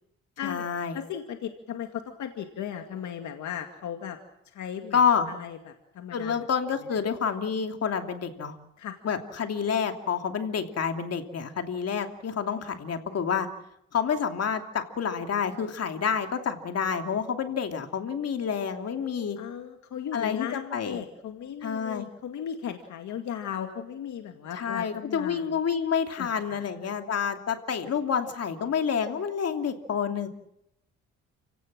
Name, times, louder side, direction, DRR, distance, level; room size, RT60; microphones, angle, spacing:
voice 1, 0.4-1.0 4.9-5.3 6.1-8.6 9.0-13.5 13.9-19.4 20.1-21.0 21.6-22.1 24.5-30.3, left 7 dB, 55° left, 5 dB, 2.9 m, -28 dB
voice 2, 0.9-4.2 4.5-5.0 5.3-6.5 8.8-9.0 19.4-25.6 26.2-26.7, left 9 dB, 70° left, 5 dB, 2.2 m, -37 dB
30.0 x 17.5 x 7.6 m, 0.81 s
cardioid pair, 90°, 30 cm